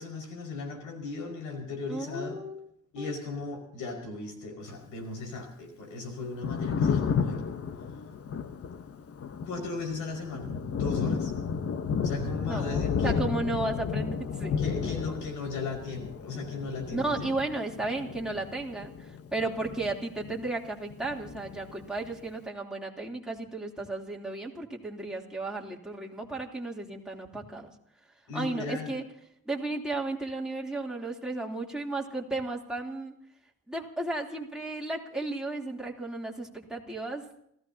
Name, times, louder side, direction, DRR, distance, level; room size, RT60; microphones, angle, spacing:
voice 1, 0.0-2.4 2.9-7.6 9.4-11.3 12.0-13.2 14.6-17.3 28.3-29.0, left 3 dB, 90° left, 4 dB, 5.6 m, -37 dB
voice 2, 1.9-2.7 3.0-3.1 12.5-14.5 16.9-27.7 28.3-29.0 29.4-33.1 33.7-37.2, right 2 dB, ahead, -2 dB, 3.2 m, -34 dB
Thunder, 6.2-20.7 20.9-22.2, left 6 dB, 50° left, 1.2 m, -32 dB
29.0 x 15.5 x 2.9 m, 0.72 s
cardioid pair, 90°, 30 cm